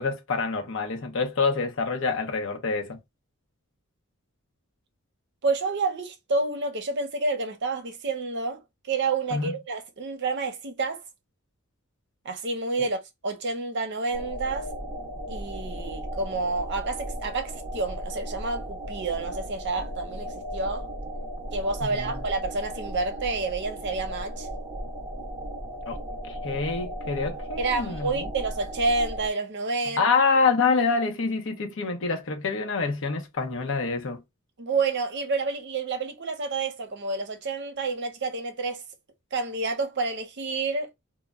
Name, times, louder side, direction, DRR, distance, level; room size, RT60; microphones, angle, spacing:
voice 1, 0.0-3.0 9.3-9.5 21.8-22.2 25.9-26.0 26.3-28.3 30.0-34.2, left 4 dB, 65° left, 0.7 m, -26 dB
voice 2, 5.4-11.0 12.2-14.7 15.3-20.9 21.5-24.5 27.6-30.1 34.6-38.8 39.3-40.9, right 3 dB, 55° right, 0.7 m, -29 dB
sound 1, 14.1-29.3, right 1 dB, 15° right, 0.8 m, -36 dB
2.1 x 2.1 x 3.4 m
head